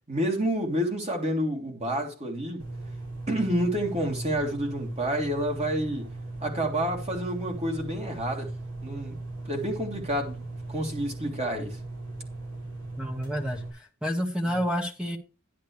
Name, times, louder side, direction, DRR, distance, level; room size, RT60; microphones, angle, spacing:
voice 1, 0.1-2.6 3.3-6.1 6.4-8.5 8.8-11.8 14.4-14.6, right 1 dB, 30° right, 3.2 m, -29 dB
sound 1, 2.6-13.7, right 2 dB, 85° right, 5.7 m, -38 dB
voice 2, 13.0-15.2, equal, 5° right, 1.6 m, -29 dB
11.5 x 10.5 x 3.3 m
head